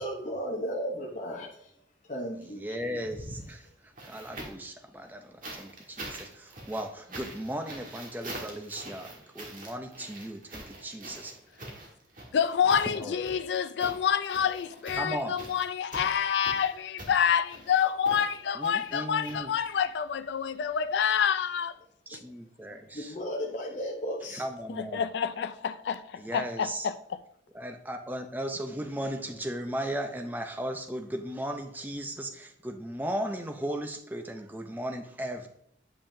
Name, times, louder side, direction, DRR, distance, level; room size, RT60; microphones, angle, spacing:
voice 1, 0.0-1.8 2.0-3.1 22.1-22.3 22.9-24.5, equal, 40° left, 0.7 m, -35 dB
voice 2, 2.4-11.4 12.6-13.2 14.9-15.4 18.5-19.6 22.1-23.1 24.3-25.0 26.2-26.9 27.5-35.5, right 1 dB, 10° right, 0.5 m, -36 dB
sound 1, 3.0-4.7 5.4-19.9 21.1-21.2, right 1 dB, 45° right, 1.5 m, -45 dB
voice 3, 12.3-21.7 24.7-27.2, left 7 dB, 75° left, 0.3 m, -28 dB
8.7 x 5.5 x 2.6 m
head